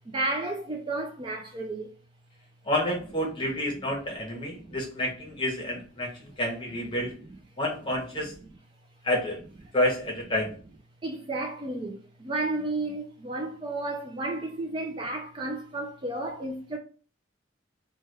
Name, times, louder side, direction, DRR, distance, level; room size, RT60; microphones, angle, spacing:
voice 1, 0.1-1.9 4.5-4.7 11.0-16.8, right 2 dB, 25° right, 0.4 m, -32 dB
voice 2, 2.7-6.1 6.4-7.1 7.6-8.3 9.0-9.4 9.7-10.5, left 1 dB, 25° left, 0.9 m, -29 dB
3.2 x 2.3 x 3.2 m
head